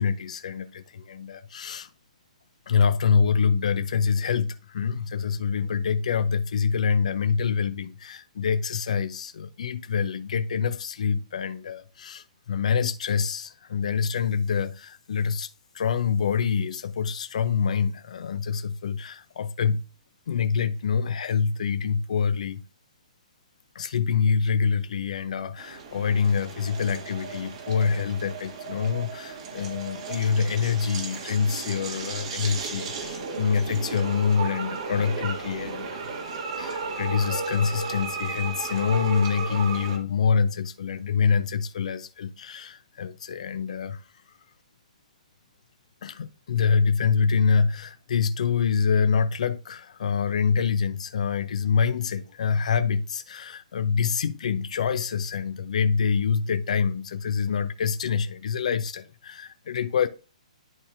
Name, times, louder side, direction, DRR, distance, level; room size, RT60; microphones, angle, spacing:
voice 1, 0.0-1.9 2.7-15.5 15.7-19.8 20.3-22.6 23.7-36.1 36.6-44.0 46.0-60.1, left 6 dB, 65° left, 0.7 m, -26 dB
sound 1, 25.6-40.0, right 5 dB, 50° right, 1.8 m, -35 dB
11.0 x 4.2 x 2.6 m
hypercardioid pair, 135°, 4 cm